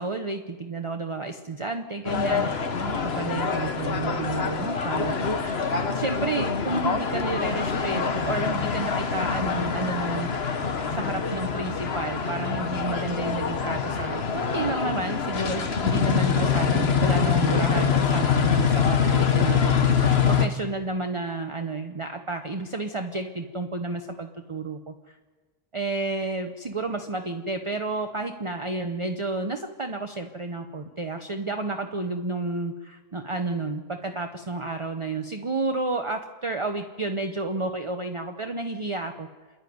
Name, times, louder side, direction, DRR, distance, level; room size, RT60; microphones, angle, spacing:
voice 1, 0.0-10.5 10.9-25.2 25.7-39.3, right 3 dB, 30° right, 5 dB, 0.9 m, -31 dB
sound 1, 2.0-20.5, left 6 dB, 85° left, 1.5 m, -25 dB
27.5 x 11.5 x 9.4 m, 1.3 s
omnidirectional pair, 1.0 m